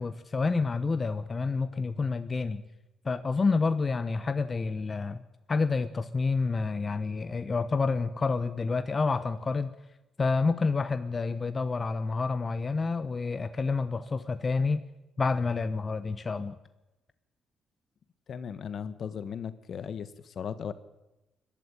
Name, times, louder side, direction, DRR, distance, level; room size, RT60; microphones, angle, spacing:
voice 1, 0.0-2.6 3.0-5.2 5.5-9.7 10.2-14.8 15.2-16.5, left 4 dB, 30° left, 12 dB, 1.0 m, -28 dB
voice 2, 18.3-20.7, left 7 dB, 55° left, 14 dB, 1.3 m, -37 dB
21.5 x 12.0 x 9.9 m, 1.0 s
cardioid pair, 90°, 0 cm